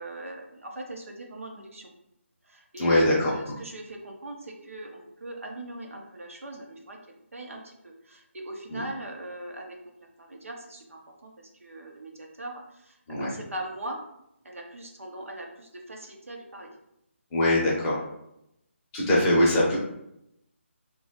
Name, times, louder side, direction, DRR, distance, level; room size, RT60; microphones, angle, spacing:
voice 1, 0.0-1.9 2.4-14.0 14.4-16.7 18.0-18.1, right 1 dB, 85° right, 1 dB, 0.7 m, -40 dB
voice 2, 2.8-3.3 8.7-8.8 13.1-13.4 17.3-18.0 18.9-19.8, left 1 dB, 15° left, -6 dB, 0.6 m, -22 dB
2.8 x 2.3 x 2.8 m, 0.81 s
figure-of-eight pair, 155°, 7 cm